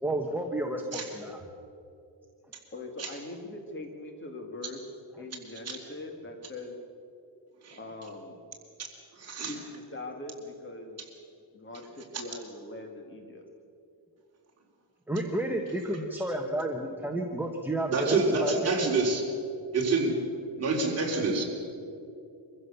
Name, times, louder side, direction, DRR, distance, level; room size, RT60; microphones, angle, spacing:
voice 1, 0.0-1.4 15.1-18.5 18.8-18.9, right 1 dB, 5° right, 1 dB, 1.2 m, -31 dB
voice 2, 2.7-4.9 5.2-6.8 7.7-8.4 9.5-11.0 11.5-13.4, left 2 dB, 25° left, 3 dB, 2.4 m, -42 dB
voice 3, 9.2-9.5 17.9-19.2 19.7-20.1 20.6-21.4, right 3 dB, 35° right, -1 dB, 4.0 m, -27 dB
25.0 x 15.5 x 6.9 m, 2.6 s
cardioid pair, 145°, 42 cm